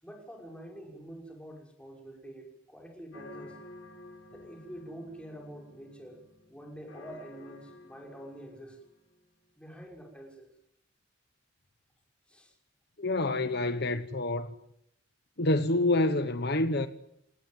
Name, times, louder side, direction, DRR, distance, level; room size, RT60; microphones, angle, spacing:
voice 1, 0.0-3.6 4.3-6.2 6.5-8.8 9.6-10.5 12.3-12.6, right 1 dB, 5° left, 6.2 m, -46 dB
sound 1, 3.1-9.2, left 1 dB, 75° left, 5.3 m, -52 dB
voice 2, 13.0-14.5 15.4-16.9, left 2 dB, 50° left, 1.2 m, -27 dB
29.5 x 18.5 x 9.3 m
head